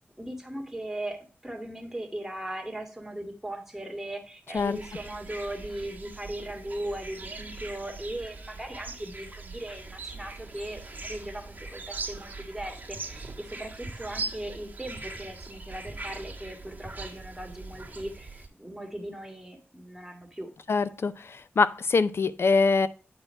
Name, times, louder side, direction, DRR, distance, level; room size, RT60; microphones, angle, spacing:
voice 1, 0.2-20.5, right 1 dB, 10° right, 2.0 m, -38 dB
sound 1, 4.5-18.5, right 3 dB, 40° right, 1.8 m, -41 dB
voice 2, 20.7-21.1 21.6-22.9, left 4 dB, 70° left, 0.6 m, -23 dB
9.4 x 4.5 x 4.5 m
wide cardioid pair, 105°, 4 cm